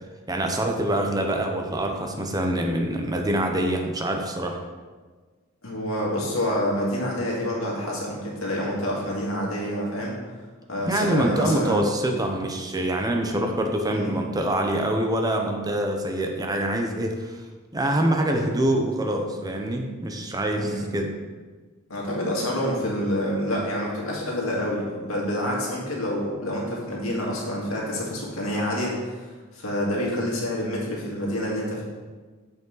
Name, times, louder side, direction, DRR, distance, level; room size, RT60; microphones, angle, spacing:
voice 1, 0.3-4.6 10.9-17.4 17.7-21.1, right 1 dB, 20° right, 3 dB, 0.7 m, -25 dB
voice 2, 5.6-10.2 10.7-11.8 13.9-14.2 20.6-20.9 21.9-31.8, equal, 90° left, -3 dB, 2.0 m, -27 dB
7.1 x 5.4 x 3.9 m, 1.4 s
head